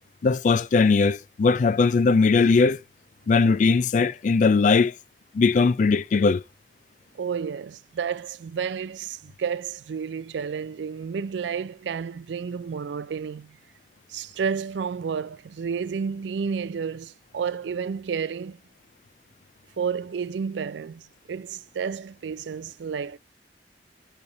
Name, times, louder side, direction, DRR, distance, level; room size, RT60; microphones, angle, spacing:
voice 1, 0.2-2.8 3.3-4.9 5.3-6.4, left 4 dB, 45° left, 0.3 m, -19 dB
voice 2, 7.1-13.6 14.1-18.6 19.8-23.2, right 6 dB, 80° right, 0.4 m, -31 dB
9.5 x 3.4 x 6.5 m
head